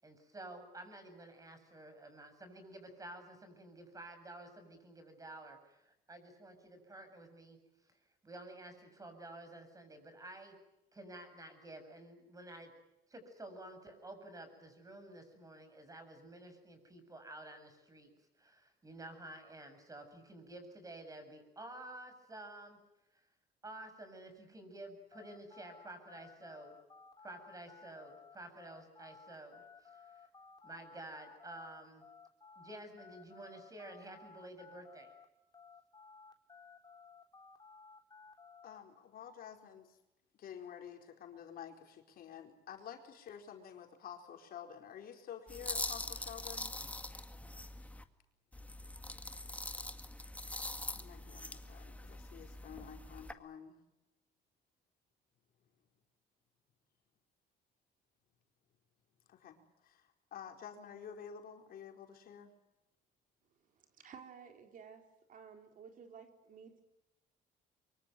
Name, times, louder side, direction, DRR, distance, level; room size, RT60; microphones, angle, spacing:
voice 1, 0.0-7.9 8.2-10.5 10.9-12.7 13.1-18.1 18.4-22.8 23.1-23.2 23.6-26.8 27.2-30.3 30.6-32.0 32.6-35.1, right 1 dB, 20° right, 8 dB, 7.6 m, -51 dB
sound 1, 25.1-35.3 35.5-38.8, left 5 dB, 25° left, 3.7 m, -57 dB
voice 2, 38.6-40.0 40.4-46.8 50.9-53.8 59.3-62.5, left 8 dB, 60° left, 3 dB, 4.5 m, -50 dB
sound 2, 45.5-48.0 48.5-53.3, left 1 dB, 10° left, 1.9 m, -43 dB
voice 3, 63.6-65.0 65.3-66.8, right 6 dB, 55° right, 5 dB, 3.9 m, -54 dB
24.0 x 24.0 x 9.3 m, 0.90 s
cardioid pair, 110°, 17 cm